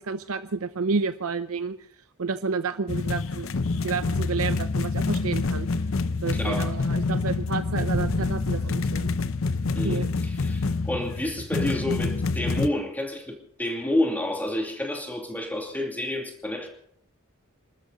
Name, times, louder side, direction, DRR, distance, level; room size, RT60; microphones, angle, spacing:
voice 1, 0.0-1.8 2.2-3.5 3.8-5.7 6.2-9.1 9.8-10.1, right 4 dB, 85° right, 10 dB, 0.7 m, -30 dB
sound 1, 2.9-12.7, left 3 dB, 70° left, 0.7 m, -27 dB
voice 2, 6.3-6.7 9.7-16.7, left 1 dB, 10° left, 2 dB, 2.5 m, -29 dB
sound 2, 7.9-10.5, right 1 dB, 60° right, 3.9 m, -36 dB
26.0 x 13.0 x 4.0 m, 0.66 s
head